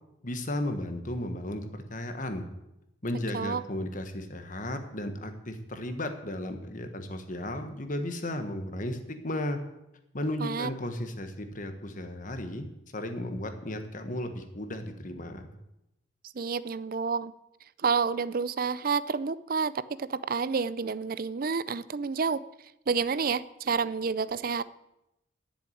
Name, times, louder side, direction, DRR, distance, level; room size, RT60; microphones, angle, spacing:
voice 1, 0.2-2.4 3.0-9.6 10.1-12.7 12.9-15.5, left 1 dB, 40° left, 7 dB, 1.4 m, -34 dB
voice 2, 16.3-17.3 17.8-19.7 20.0-22.4 22.9-24.6, right 5 dB, 50° right, 16 dB, 0.5 m, -29 dB
11.0 x 7.1 x 9.2 m, 0.89 s
head